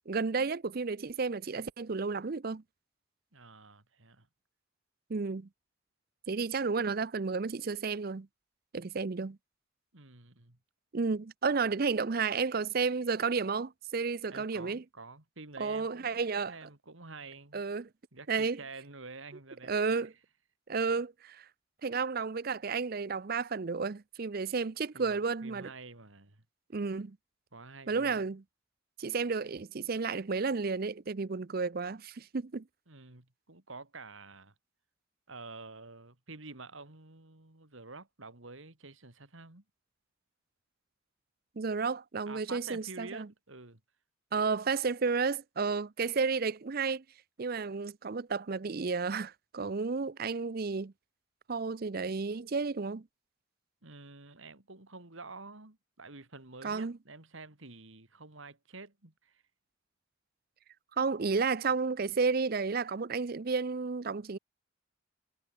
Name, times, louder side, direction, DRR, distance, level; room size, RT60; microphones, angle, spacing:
voice 1, 0.1-2.6 5.1-5.5 6.3-8.3 8.7-9.4 10.9-14.8 15.6-16.5 17.5-17.9 18.3-18.6 19.7-20.1 20.7-21.5 21.8-25.7 26.7-27.2 27.9-28.4 29.0-32.6 41.6-43.3 44.3-47.0 47.4-50.9 51.5-53.1 56.6-57.0 61.0-64.4, right 4 dB, 45° right, 0.5 m, -32 dB
voice 2, 3.3-4.3 9.9-10.6 14.3-17.6 18.1-20.1 24.9-25.2 25.4-26.4 27.5-28.2 32.9-34.5 35.3-39.6 42.3-43.8 53.8-59.4, right 3 dB, 75° right, 2.7 m, -49 dB
head